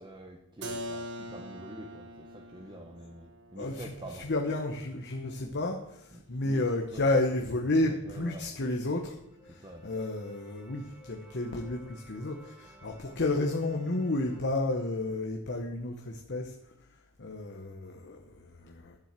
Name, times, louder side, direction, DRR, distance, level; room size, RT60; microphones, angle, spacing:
voice 1, 0.0-4.3 6.1-6.6 6.9-7.1 7.9-8.5 9.6-9.9, right 1 dB, 20° right, 1 dB, 1.0 m, -46 dB
Keyboard (musical), 0.6-6.2, equal, 50° right, 1.2 m, -44 dB
voice 2, 3.6-9.2 9.4-16.5 17.2-19.0, left 2 dB, 50° left, 3 dB, 1.0 m, -31 dB
sound 1, 8.9-14.4, equal, ahead, 2.0 m, -56 dB
10.5 x 7.5 x 7.4 m, 0.82 s
head